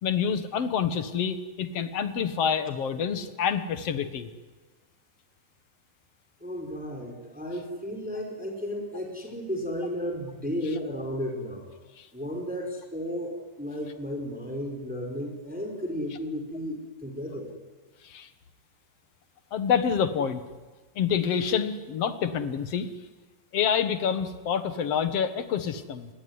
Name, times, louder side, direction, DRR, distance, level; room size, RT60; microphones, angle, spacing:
voice 1, 0.0-4.3 12.0-12.1 18.0-18.3 19.5-20.4 21.0-22.9 23.5-26.1, left 7 dB, 55° left, 10 dB, 2.1 m, -27 dB
voice 2, 6.4-11.7 12.1-16.8 17.0-17.5, equal, ahead, 2 dB, 4.5 m, -33 dB
28.5 x 21.5 x 9.7 m, 1.3 s
omnidirectional pair, 4.0 m